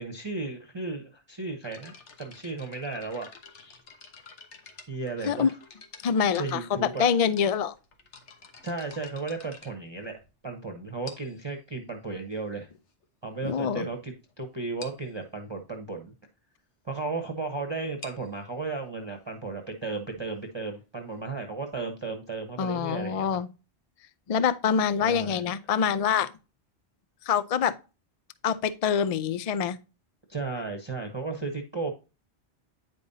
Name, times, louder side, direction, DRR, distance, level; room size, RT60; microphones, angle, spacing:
voice 1, 0.0-1.9 2.2-3.8 4.9-5.5 6.4-7.1 8.6-10.2 10.4-12.7 13.2-16.1 16.8-23.4 25.0-25.4 30.3-31.9, right 3 dB, 25° right, 1.0 m, -34 dB
sound 1, 1.6-10.5 11.0-11.5 12.3-12.4 13.0-13.1 13.4-13.6 13.9-14.0 14.3-14.4 14.8-15.1 17.8-21.3, left 4 dB, 90° left, 1.4 m, -50 dB
voice 2, 6.0-7.7 13.4-13.9 22.6-23.5 24.3-26.3 27.3-27.8 28.4-29.8, left 7 dB, 50° left, 0.4 m, -25 dB
9.3 x 5.3 x 2.7 m
omnidirectional pair, 1.1 m